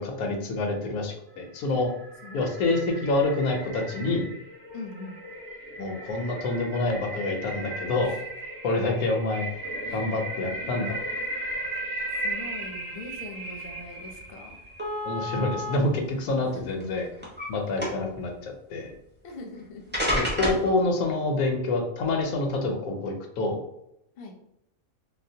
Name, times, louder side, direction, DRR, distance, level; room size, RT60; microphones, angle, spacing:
voice 1, 0.0-1.9 2.3-4.3 5.8-8.1 8.6-9.5 9.9-10.9 15.0-17.1 17.5-18.9 20.1-23.6, left 2 dB, 90° left, 3 dB, 1.1 m, -27 dB
sound 1, 1.5-14.9, right 1 dB, 50° right, 1.1 m, -36 dB
voice 2, 4.7-5.2 8.0-8.2 9.8-10.0 11.4-11.5 12.2-14.6 16.5-16.8 19.2-19.8 24.2-24.4, left 3 dB, 55° left, 2 dB, 0.7 m, -42 dB
sound 2, 13.7-13.8 14.1-14.2 14.8-15.7 16.6-17.5 17.8-18.2 19.3-19.4 19.9-20.7, equal, 10° right, 0.6 m, -29 dB
4.1 x 2.0 x 2.7 m, 0.80 s
omnidirectional pair, 1.5 m